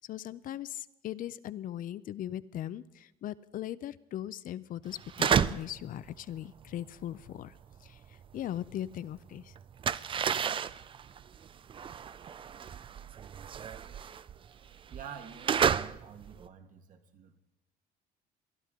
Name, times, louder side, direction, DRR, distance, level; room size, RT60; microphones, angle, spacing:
voice 1, 0.1-7.5 7.8-8.0 8.3-9.5, left 12 dB, 55° left, 17 dB, 0.5 m, -39 dB
sound 1, 4.9-5.8 6.1-9.0 9.3-16.5, right 8 dB, 30° right, 0.4 m, -32 dB
voice 2, 14.9-17.4, right 7 dB, 50° right, 6 dB, 1.5 m, -48 dB
22.5 x 11.5 x 3.7 m, 0.96 s
cardioid pair, 110°, 17 cm